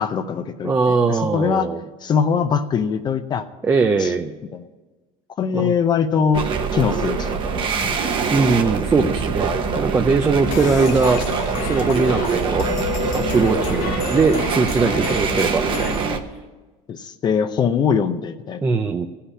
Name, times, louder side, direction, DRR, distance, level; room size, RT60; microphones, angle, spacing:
voice 1, 0.0-1.7 2.0-3.5 4.0-4.1 4.5-4.6 5.4-6.5 6.7-8.0 16.9-18.6, left 6 dB, 30° left, 9 dB, 0.6 m, -22 dB
voice 2, 0.6-1.8 3.6-4.3 5.5-5.7 8.3-11.2 11.6-12.7 13.1-16.0 18.6-19.1, right 4 dB, 15° right, 6 dB, 0.5 m, -20 dB
sound 1, 6.3-16.2, right 5 dB, 35° right, 1.1 m, -24 dB
sound 2, 10.5-16.1, left 9 dB, 65° left, 1.1 m, -30 dB
15.5 x 5.7 x 9.8 m, 1.3 s
cardioid pair, 150°, 15 cm